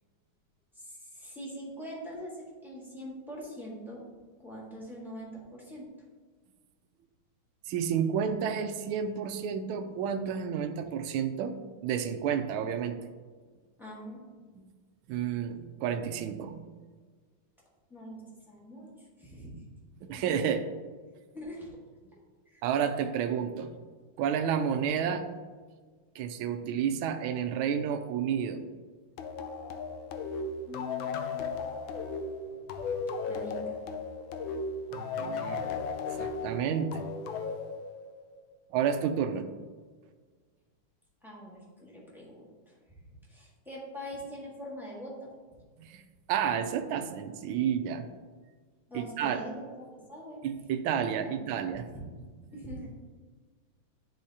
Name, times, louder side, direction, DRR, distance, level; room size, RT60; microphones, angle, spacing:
voice 1, 0.7-4.0 4.4-5.9 13.8-14.2 17.9-19.5 20.1-20.2 21.3-21.7 22.5-22.6 30.6-31.4 32.0-32.3 33.3-33.8 41.2-43.0 43.3-45.3 48.9-50.4 51.0-51.4 51.9-52.1 52.5-52.9, equal, ahead, -5 dB, 1.2 m, -43 dB
voice 2, 7.7-11.5 11.8-13.0 14.6-14.7 15.1-16.6 20.0-20.6 22.6-23.7 24.2-25.2 26.1-28.6 34.9-35.6 36.2-37.1 38.7-39.4 45.8-46.0 46.3-48.1 48.9-49.4 50.4-51.9, right 8 dB, 80° right, 7 dB, 1.4 m, -30 dB
sound 1, 29.2-38.4, left 4 dB, 75° left, 1.3 m, -36 dB
10.5 x 3.9 x 2.8 m, 1.5 s
omnidirectional pair, 2.3 m